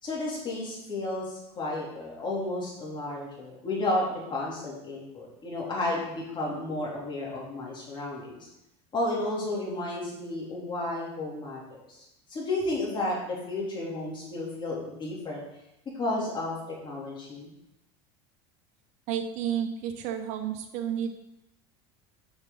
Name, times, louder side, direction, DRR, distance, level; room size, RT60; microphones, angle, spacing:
voice 1, 0.0-8.5 8.9-12.0 12.3-15.4 15.9-16.5 16.8-17.5, left 2 dB, 30° left, -4 dB, 3.5 m, -32 dB
voice 2, 19.1-21.1, right 9 dB, 55° right, 5 dB, 0.9 m, -31 dB
8.7 x 6.0 x 4.1 m, 0.87 s
supercardioid pair, 105°, 15 cm